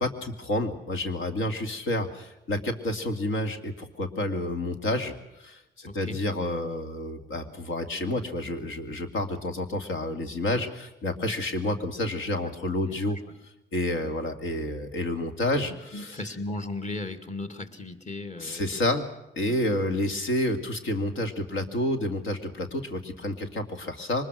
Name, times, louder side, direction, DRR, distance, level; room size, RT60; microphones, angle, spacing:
voice 1, 0.0-13.2 13.7-16.2 18.4-19.0 19.4-24.3, left 1 dB, 80° left, 6 dB, 2.4 m, -29 dB
voice 2, 5.8-6.2 12.9-13.0 15.9-18.7 19.5-19.6, left 2 dB, 35° left, 6 dB, 2.2 m, -36 dB
24.0 x 20.5 x 6.3 m, 0.90 s
cardioid pair, 90°, 20 cm